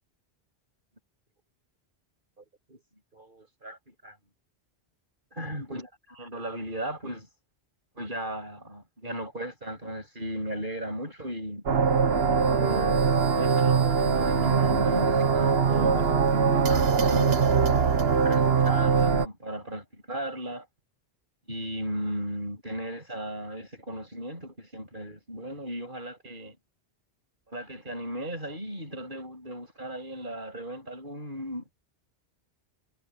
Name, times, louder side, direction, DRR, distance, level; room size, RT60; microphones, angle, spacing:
voice 1, 2.4-2.8 3.1-4.2 5.3-7.3 7.9-11.7 12.6-17.4 18.2-20.7 21.5-26.6 27.5-31.7, right 1 dB, 50° right, 8.1 m, -37 dB
sound 1, 11.7-19.3, right 5 dB, 70° right, 1.5 m, -22 dB
omnidirectional pair, 1.1 m